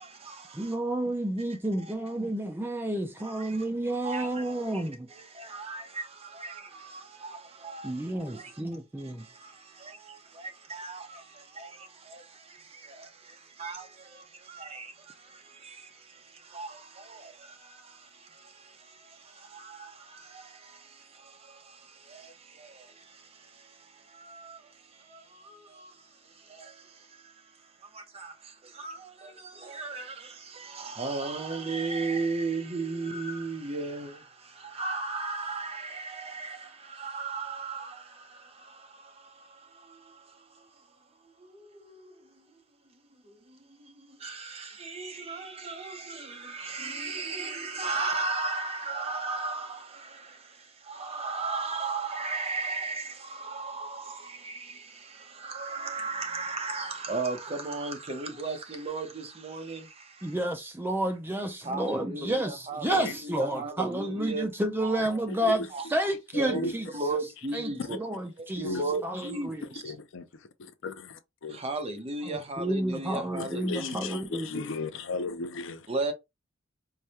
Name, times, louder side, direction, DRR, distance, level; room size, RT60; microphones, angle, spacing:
voice 1, 0.0-0.8 1.5-2.0 3.2-3.7 4.0-42.5 42.9-60.4 61.6-64.5 64.8-65.9 66.4-66.7 66.9-68.1 68.6-69.9 71.5-74.1 75.9-76.1, right 3 dB, 30° right, 0.8 m, -37 dB
voice 2, 0.5-5.1 7.8-9.2 60.2-66.9 67.5-67.7 68.0-68.7 69.0-69.6 72.6-74.7, right 1 dB, 10° right, 0.4 m, -30 dB
voice 3, 66.3-66.7 68.6-68.8 69.8-70.2 70.6-70.9 71.4-71.6 73.4-75.8, left 3 dB, 70° left, 0.5 m, -35 dB
4.7 x 2.2 x 2.8 m
head